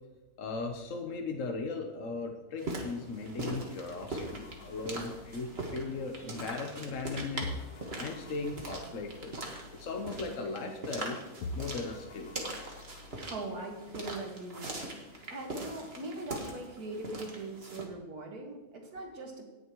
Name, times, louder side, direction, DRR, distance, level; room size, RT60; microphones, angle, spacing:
voice 1, 0.4-7.5 7.9-9.3 9.7-11.2 11.5-12.3, left 3 dB, 60° left, 3 dB, 1.4 m, -37 dB
sound 1, 2.6-17.9, right 2 dB, 40° right, 1.9 m, -42 dB
sound 2, 4.1-7.1 7.4-11.1 11.4-13.2, left 3 dB, 85° left, 1.3 m, -47 dB
voice 2, 13.1-15.0 15.3-19.4, right 2 dB, 80° right, 1 dB, 2.4 m, -41 dB
18.5 x 7.1 x 3.1 m, 1.1 s
omnidirectional pair, 1.6 m